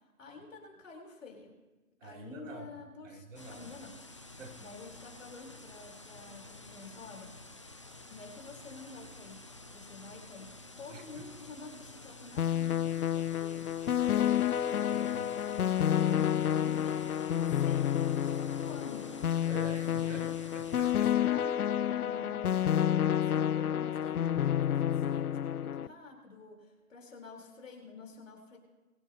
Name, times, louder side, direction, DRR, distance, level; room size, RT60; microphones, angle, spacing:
voice 1, 0.2-1.5 2.0-4.2 4.6-7.3 8.1-13.7 15.7-17.1 17.4-19.2 19.8-20.4 20.7-22.6 23.1-28.6, left 3 dB, 60° left, 0 dB, 3.9 m, -49 dB
voice 2, 2.0-2.7 3.0-3.8 4.4-4.6 10.9-11.3 14.0-15.5 19.5-20.3 20.5-21.3, right 2 dB, 60° right, 0 dB, 3.2 m, -47 dB
sound 1, 3.3-20.9, left 2 dB, 20° left, 0.5 m, -51 dB
sound 2, 12.4-25.9, left 10 dB, 90° left, 0.6 m, -29 dB
22.5 x 10.5 x 2.8 m, 1.2 s
hypercardioid pair, 155°, 43 cm